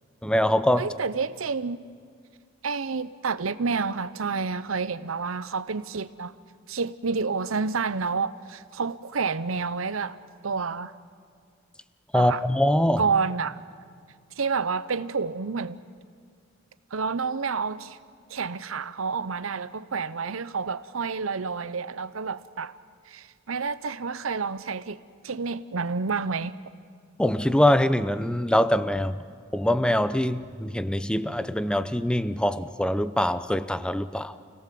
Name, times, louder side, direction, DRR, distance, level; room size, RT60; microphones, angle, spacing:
voice 1, 0.2-0.9 12.1-13.0 27.2-29.2 29.5-34.3, left 1 dB, 5° left, 0.6 m, -23 dB
voice 2, 0.8-1.8 2.6-6.3 6.7-10.2 10.4-10.9 12.1-12.4 13.0-13.6 14.4-15.8 16.9-18.0 18.3-22.8 23.1-26.5, right 5 dB, 80° right, 0.8 m, -29 dB
29.0 x 17.5 x 7.7 m
head